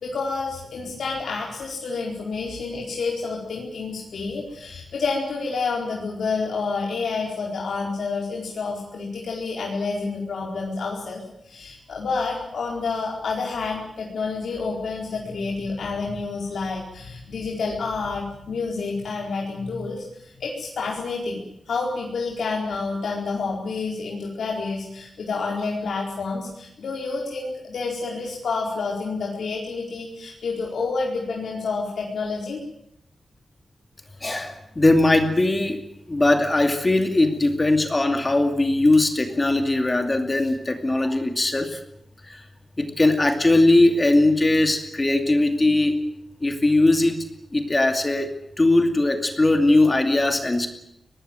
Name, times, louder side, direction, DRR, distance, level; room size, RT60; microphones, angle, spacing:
voice 1, 0.0-32.6, left 4 dB, 90° left, -1 dB, 4.5 m, -29 dB
voice 2, 34.2-35.8 36.1-41.8 42.3-42.4 42.8-46.0 46.4-47.2 47.5-48.3 48.6-50.7, left 2 dB, 20° left, 6 dB, 2.5 m, -20 dB
23.5 x 19.0 x 9.0 m, 0.78 s
wide cardioid pair, 165°, 0 cm